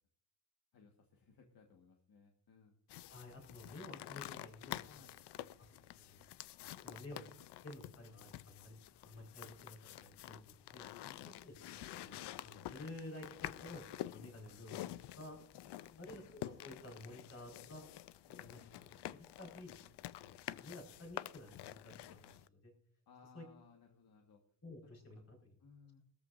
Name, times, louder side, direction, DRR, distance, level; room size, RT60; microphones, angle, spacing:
voice 1, 0.7-2.7 4.8-5.2 11.0-11.3 15.6-16.3 23.1-24.4 24.8-24.9 25.6-26.0, left 5 dB, 60° left, 3 dB, 1.6 m, -63 dB
sound 1, 2.9-22.5, left 14 dB, 85° left, 0.6 m, -49 dB
voice 2, 3.1-5.1 5.6-6.2 6.8-7.2 7.6-10.9 11.2-13.8 14.1-15.4 16.0-17.8 18.3-19.8 20.2-22.7 23.3-23.6 24.6-25.5, left 1 dB, 40° left, 0 dB, 4.7 m, -53 dB
20.5 x 14.0 x 2.6 m, 0.62 s
cardioid pair, 140°, 40 cm